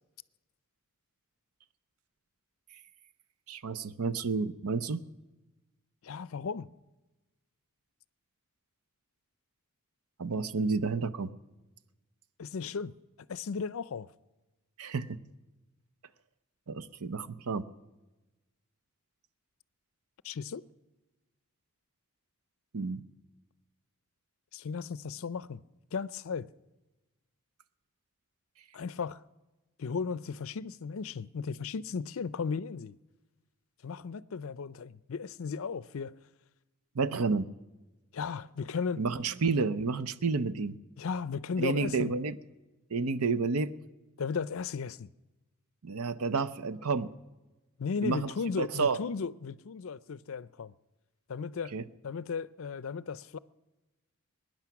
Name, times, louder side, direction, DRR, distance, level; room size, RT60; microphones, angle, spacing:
voice 1, 3.5-5.0 10.2-11.3 14.8-15.2 16.7-17.6 22.7-23.0 36.9-37.5 39.0-40.8 41.6-42.4 42.9-43.7 45.8-47.1 48.0-48.3 48.6-49.0 51.7-51.8, right 4 dB, 80° right, 0.7 m, -30 dB
voice 2, 6.0-6.7 12.4-12.9 13.3-14.1 20.2-20.6 24.5-25.6 25.9-26.5 28.7-29.2 29.8-32.9 33.8-36.2 38.1-39.0 41.0-42.1 44.2-45.1 47.8-50.7 51.3-51.7 52.0-53.4, left 5 dB, 60° left, 0.5 m, -35 dB
22.5 x 10.5 x 5.9 m
head